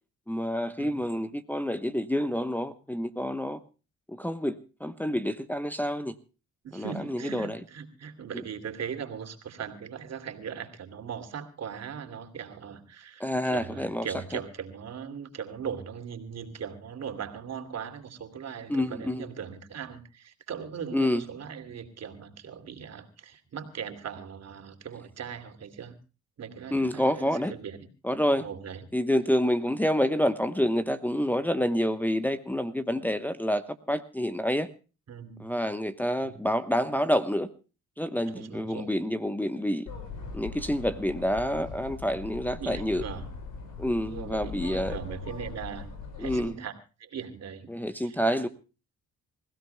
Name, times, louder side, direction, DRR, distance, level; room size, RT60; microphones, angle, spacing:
voice 1, 0.3-3.6 4.1-4.5 4.8-6.1 6.7-7.6 13.2-14.1 18.7-19.2 20.9-21.2 26.7-27.5 28.0-28.5 28.9-33.6 33.9-34.7 35.4-37.5 38.0-39.9 40.3-43.0 43.8-44.9 46.2-46.5 47.7-48.5, equal, 5° left, 8 dB, 1.0 m, -28 dB
voice 2, 6.6-26.0 26.4-27.9 28.4-28.9 35.1-35.5 36.2-36.4 38.2-38.9 42.6-43.3 44.0-45.9 46.2-46.7 47.0-47.7 48.0-48.2, right 7 dB, 60° right, 6 dB, 2.8 m, -39 dB
sound 1, 39.9-46.5, left 4 dB, 75° left, 6.2 m, -40 dB
27.0 x 16.0 x 2.2 m, 0.34 s
cardioid pair, 90°, 30 cm